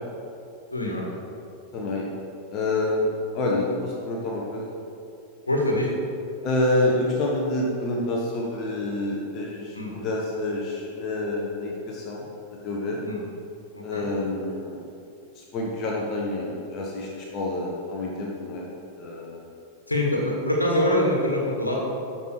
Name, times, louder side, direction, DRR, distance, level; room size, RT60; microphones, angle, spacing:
voice 1, 0.7-1.2 5.5-6.0 9.7-10.0 13.0-13.2 13.7-14.1 19.9-21.8, left 1 dB, 80° left, -1 dB, 1.8 m, -24 dB
voice 2, 1.7-2.1 2.5-4.7 6.4-13.0 13.8-14.8 15.3-18.7 19.0-19.4, left 2 dB, 35° left, -2 dB, 1.5 m, -28 dB
13.0 x 6.0 x 4.9 m, 2.6 s
figure-of-eight pair, 90°, 0 cm